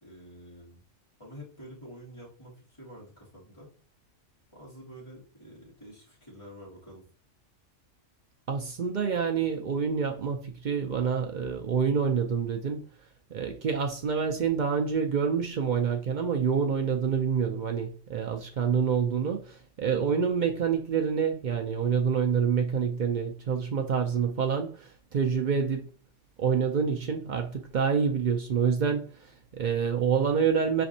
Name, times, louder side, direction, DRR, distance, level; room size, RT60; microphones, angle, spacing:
voice 1, 0.0-0.8 1.2-3.7 4.5-7.1, equal, 25° left, 2.5 m, -48 dB
voice 2, 8.5-12.9 13.3-25.9 26.4-30.8, right 6 dB, 60° right, 0.5 m, -27 dB
5.0 x 3.3 x 2.7 m
omnidirectional pair, 1.3 m